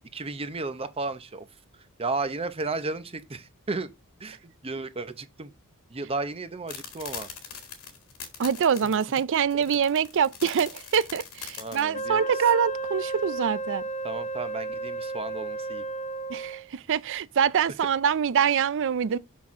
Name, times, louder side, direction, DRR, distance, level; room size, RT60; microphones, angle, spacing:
voice 1, 0.1-3.9 4.2-5.5 5.9-7.3 8.8-8.9 11.6-12.5 14.0-15.9, right 3 dB, 25° right, 0.7 m, -34 dB
sound 1, 6.7-11.8, left 7 dB, 75° left, 2.1 m, -41 dB
voice 2, 8.4-13.8 16.3-19.2, right 7 dB, 55° right, 0.4 m, -25 dB
Wind instrument woodwind instrument, 11.9-16.7, right 3 dB, 30° left, 0.7 m, -33 dB
6.2 x 6.1 x 3.6 m
head